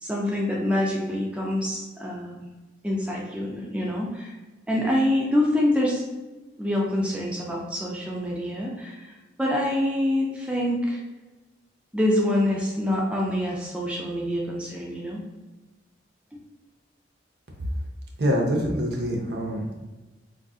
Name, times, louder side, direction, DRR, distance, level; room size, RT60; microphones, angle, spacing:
voice 1, 0.0-2.5 2.8-4.3 4.7-6.0 6.6-9.1 9.4-11.0 11.9-15.2, left 1 dB, 5° right, -3 dB, 0.4 m, -26 dB
voice 2, 18.2-19.8, equal, 60° right, 0 dB, 0.6 m, -25 dB
3.6 x 2.5 x 2.3 m, 1.1 s
head